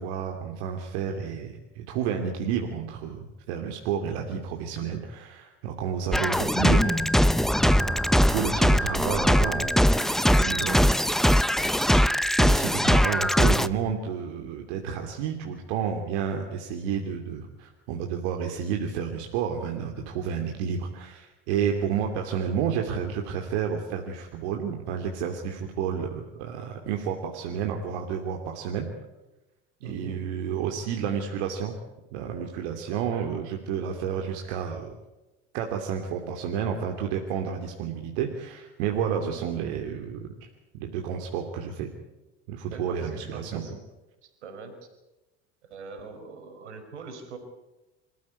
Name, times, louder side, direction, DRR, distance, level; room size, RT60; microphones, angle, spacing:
voice 1, 0.0-7.1 7.6-7.8 8.3-10.9 11.9-12.0 12.4-28.9 29.8-31.7 32.1-35.0 35.5-40.5 40.7-41.9 42.5-43.6, right 7 dB, 70° right, 2 dB, 2.9 m, -31 dB
sound 1, 6.1-13.7, equal, ahead, 0.9 m, -21 dB
voice 2, 29.8-30.3 32.9-33.5 39.0-39.5 42.7-43.8 44.2-44.7 45.6-47.4, right 4 dB, 90° right, 7 dB, 4.8 m, -43 dB
26.5 x 15.0 x 9.7 m, 1.0 s
hypercardioid pair, 75°, 34 cm